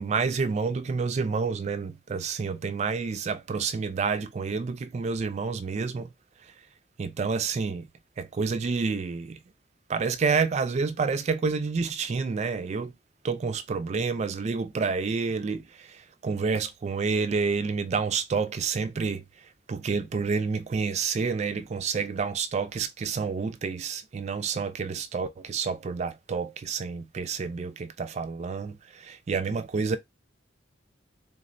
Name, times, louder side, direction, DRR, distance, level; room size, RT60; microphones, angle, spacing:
voice 1, 0.0-6.1 7.0-7.9 8.2-9.4 9.9-12.9 13.2-19.2 19.7-30.0, right 5 dB, 35° right, 0.3 m, -29 dB
3.6 x 2.1 x 2.5 m
head